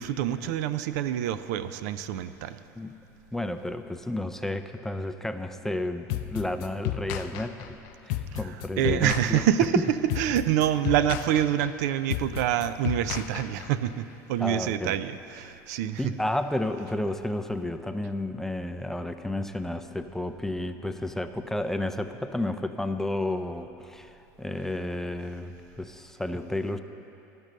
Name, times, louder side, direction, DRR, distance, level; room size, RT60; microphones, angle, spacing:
voice 1, 0.0-2.6 8.3-9.8 10.2-16.1, right 11 dB, 75° right, 13 dB, 0.4 m, -26 dB
voice 2, 3.3-7.8 8.0-9.4 14.4-15.0 16.0-26.8, left 1 dB, 5° left, 8 dB, 0.4 m, -32 dB
sound 1, 6.1-13.9, left 13 dB, 70° left, 0.5 m, -33 dB
12.0 x 5.3 x 6.3 m, 3.0 s
supercardioid pair, 105°, 9 cm